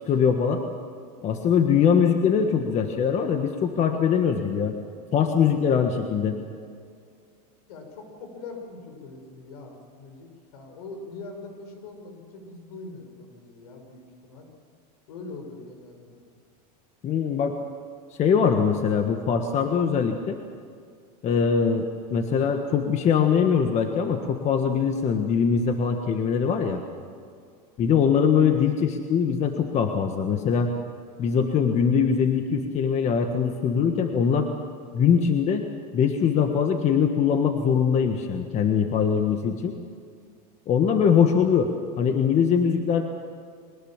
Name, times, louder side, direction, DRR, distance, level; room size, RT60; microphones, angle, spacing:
voice 1, 0.1-0.6 1.2-4.8 5.1-6.4 17.0-17.5 18.2-20.4 21.2-26.8 27.8-30.7 31.2-34.5 34.9-35.6 35.9-39.8 40.7-41.7 42.0-43.0, left 7 dB, 35° left, 5 dB, 1.6 m, -22 dB
voice 2, 7.7-14.5 15.1-16.2, left 3 dB, 75° left, 4 dB, 5.8 m, -42 dB
23.0 x 19.0 x 7.4 m, 2.2 s
supercardioid pair, 130°, 20 cm